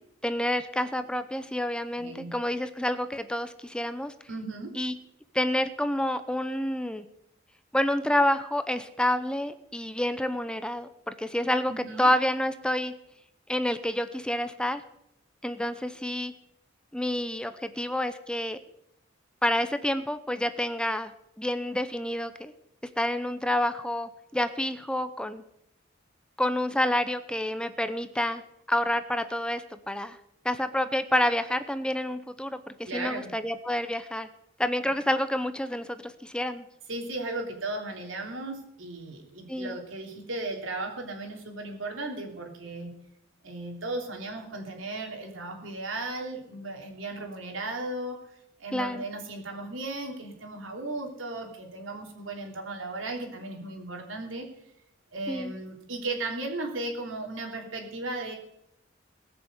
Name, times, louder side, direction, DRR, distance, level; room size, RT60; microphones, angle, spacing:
voice 1, 0.2-4.1 4.8-4.9 5.3-7.1 7.7-11.7 12.0-12.9 13.5-14.8 15.4-16.3 16.9-18.6 19.4-21.1 21.4-22.5 23.0-25.4 26.4-28.4 28.7-30.2 30.4-34.3 34.6-36.6 39.5-39.8 48.7-49.1 55.3-55.5, left 1 dB, 5° left, 11 dB, 0.6 m, -28 dB
voice 2, 2.0-2.3 4.3-4.7 11.7-12.1 32.9-33.3 36.9-42.9 43.4-48.2 48.6-54.5 55.1-58.4, right 2 dB, 90° right, 2 dB, 3.4 m, -36 dB
19.5 x 7.0 x 8.0 m, 0.80 s
head